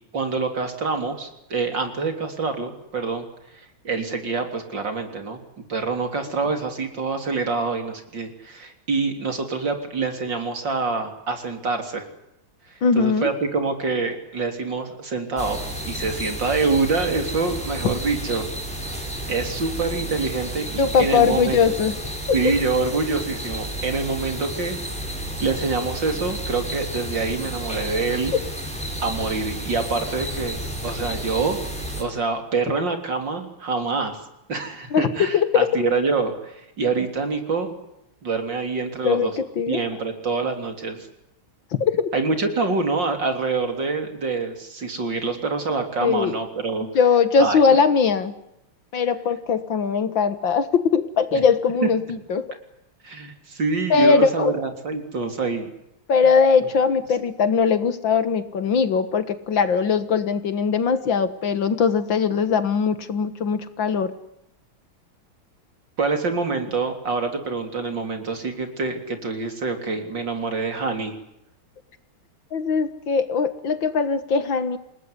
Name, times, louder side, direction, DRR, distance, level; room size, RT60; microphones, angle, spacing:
voice 1, 0.1-3.3 3.5-5.4 5.7-12.1 12.7-18.5 19.3-21.6 22.3-25.1 25.4-28.3 29.0-30.6 30.8-31.6 32.0-34.2 34.5-37.7 38.2-39.4 39.7-41.1 42.1-46.9 47.4-47.6 51.3-51.4 51.8-51.9 53.0-55.7 66.0-71.1, right 4 dB, 55° right, 6 dB, 4.2 m, -26 dB
voice 2, 12.8-13.3 20.8-22.0 22.3-22.4 28.3-28.4 34.9-35.7 39.0-39.8 41.8-42.1 46.0-46.4 46.9-48.3 48.9-52.5 53.9-54.5 56.1-64.1 72.5-74.8, left 5 dB, 65° left, 12 dB, 2.2 m, -20 dB
sound 1, 15.4-32.0, equal, 5° left, 6.3 m, -31 dB
28.0 x 19.5 x 9.9 m, 0.84 s
omnidirectional pair, 2.3 m